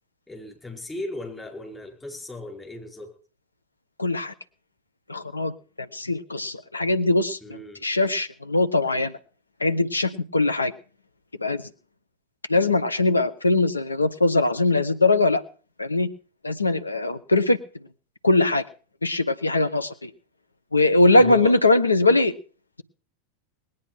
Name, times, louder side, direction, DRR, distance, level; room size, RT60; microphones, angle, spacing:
voice 1, 0.3-3.1 7.4-7.8 21.2-21.6, left 2 dB, 10° left, 1 dB, 5.1 m, -36 dB
voice 2, 4.0-4.3 5.1-5.5 5.8-7.4 7.8-9.1 9.6-10.7 11.4-11.6 12.5-15.4 15.8-16.1 16.4-17.6 18.2-18.6 19.0-20.1 20.7-22.3, left 2 dB, 80° left, 10 dB, 1.1 m, -21 dB
20.0 x 9.4 x 6.0 m, 0.41 s
figure-of-eight pair, 90°, 0 cm